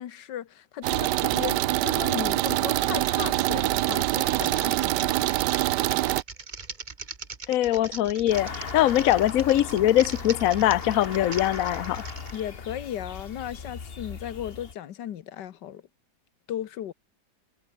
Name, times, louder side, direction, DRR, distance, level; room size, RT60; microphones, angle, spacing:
voice 1, 0.0-5.2 12.3-15.8 16.5-16.9, left 10 dB, 85° left, 1.7 m, -36 dB
sound 1, 0.8-6.2, right 16 dB, 80° right, 1.2 m, -25 dB
Typing, 4.3-12.4, right 4 dB, 30° right, 1.6 m, -41 dB
voice 2, 7.5-12.0, left 13 dB, 60° left, 1.0 m, -22 dB
sound 2, 8.3-14.7, left 5 dB, 35° left, 1.6 m, -37 dB
omnidirectional pair, 1.8 m